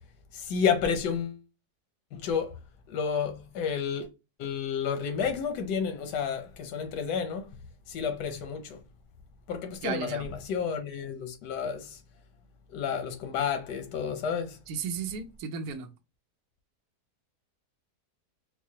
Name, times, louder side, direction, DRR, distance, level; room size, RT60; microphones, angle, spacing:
voice 1, 0.3-1.4 2.1-2.5 2.9-4.1 4.4-7.5 7.9-8.8 9.5-12.0 12.7-14.6, left 6 dB, 90° left, 1.3 m, -30 dB
voice 2, 9.8-10.3 14.7-15.9, right 6 dB, 70° right, 1.0 m, -34 dB
4.6 x 2.0 x 2.8 m
omnidirectional pair, 1.7 m